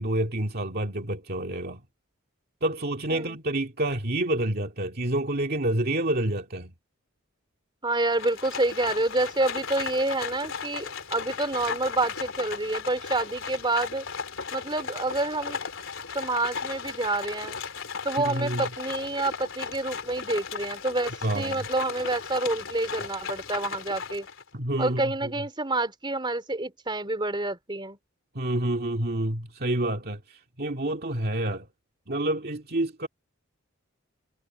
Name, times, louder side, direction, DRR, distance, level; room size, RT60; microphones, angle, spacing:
voice 1, 0.0-1.8 2.6-6.7 18.3-18.7 21.2-21.7 24.5-25.3 28.3-31.7 32.1-33.1, right 1 dB, 45° right, 2.2 m, -28 dB
voice 2, 7.8-14.1 14.5-15.6 16.1-17.6 18.0-24.3 24.8-28.0, right 2 dB, 25° right, 3.8 m, -28 dB
Livestock farm animals working animals, 8.1-24.5, left 5 dB, 65° left, 3.8 m, -36 dB
head